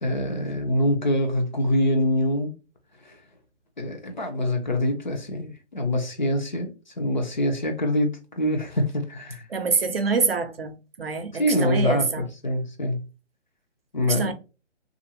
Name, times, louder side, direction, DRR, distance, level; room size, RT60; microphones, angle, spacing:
voice 1, 0.0-2.5 3.0-3.2 3.8-9.5 11.4-13.0 13.9-14.3, left 1 dB, 40° left, 0.6 m, -25 dB
voice 2, 9.5-12.3 14.1-14.3, right 4 dB, 55° right, 0.4 m, -26 dB
2.8 x 2.5 x 2.8 m
hypercardioid pair, 170°, 37 cm